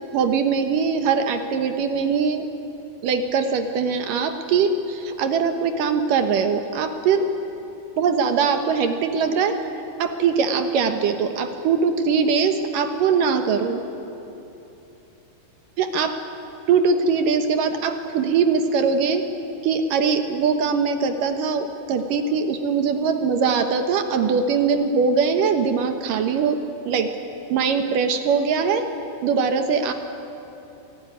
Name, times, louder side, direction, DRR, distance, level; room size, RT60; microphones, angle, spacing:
voice 1, 0.1-2.5 3.0-7.3 8.0-9.5 10.0-13.8 15.8-16.2 16.7-19.2 19.6-26.6 26.8-27.1 27.5-28.9 29.2-29.9, right 5 dB, 65° right, 7 dB, 2.6 m, -21 dB
27.0 x 17.5 x 9.7 m, 2.9 s
omnidirectional pair, 4.5 m